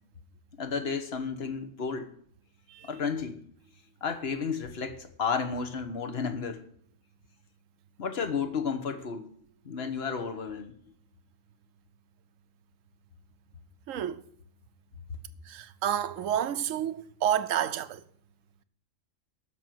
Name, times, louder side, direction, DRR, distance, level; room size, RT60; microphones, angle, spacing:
voice 1, 0.6-2.1 2.8-3.5 4.0-6.6 8.0-9.3 9.6-10.8, left 5 dB, 50° left, 1.4 m, -32 dB
voice 2, 13.9-14.2 15.5-18.0, right 10 dB, 75° right, 1.1 m, -30 dB
13.5 x 6.1 x 7.8 m
omnidirectional pair, 1.4 m